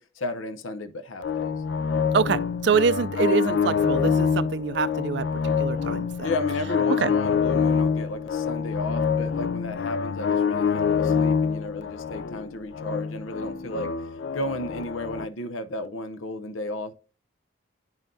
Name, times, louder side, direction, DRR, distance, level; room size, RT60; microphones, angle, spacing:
voice 1, 0.0-1.5 6.2-16.9, left 2 dB, 85° left, 0.7 m, -33 dB
sound 1, 1.2-15.3, left 6 dB, 60° left, 0.4 m, -26 dB
voice 2, 2.1-6.3 6.9-7.1, right 6 dB, 60° right, 0.4 m, -25 dB
10.5 x 5.6 x 2.6 m
head